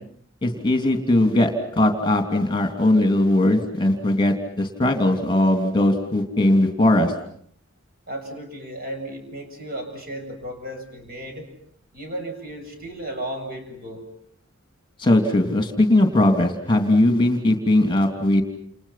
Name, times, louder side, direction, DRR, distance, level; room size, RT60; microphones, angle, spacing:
voice 1, 0.4-7.1 15.0-18.4, left 1 dB, 25° left, 5 dB, 3.0 m, -19 dB
voice 2, 8.1-11.5 11.9-14.0, right 1 dB, 45° right, 3 dB, 7.7 m, -34 dB
29.5 x 29.5 x 5.9 m, 0.64 s
head